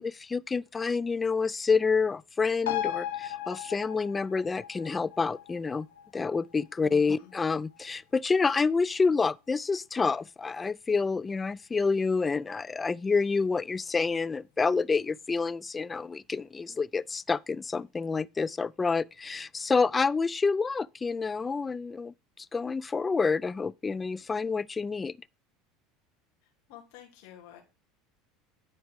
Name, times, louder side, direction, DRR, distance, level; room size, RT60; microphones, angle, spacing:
voice 1, 0.0-5.9 6.1-25.2, left 4 dB, 20° left, 0.3 m, -28 dB
sound 1, 2.7-9.6 10.0-10.1, left 12 dB, 85° left, 1.0 m, -39 dB
voice 2, 6.8-7.4 26.4-27.6, left 11 dB, 70° left, 3.0 m, -51 dB
10.0 x 4.7 x 4.8 m
hypercardioid pair, 85°, 0 cm